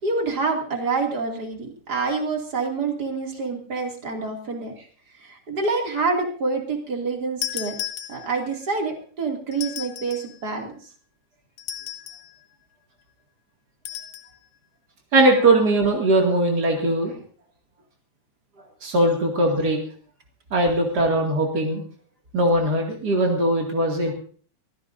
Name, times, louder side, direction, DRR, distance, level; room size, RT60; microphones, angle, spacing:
voice 1, 0.0-4.7 5.2-7.7 8.1-10.7, right 4 dB, 35° right, 2 dB, 1.6 m, -27 dB
sound 1, 7.4-8.6 9.5-10.4 11.6-12.3 13.8-14.3, left 11 dB, 90° left, 1.7 m, -34 dB
voice 2, 15.1-17.1 18.8-19.8 20.5-21.8 22.3-24.1, right 1 dB, 55° right, 1 dB, 1.0 m, -20 dB
25.0 x 15.5 x 2.6 m, 0.44 s
omnidirectional pair, 5.6 m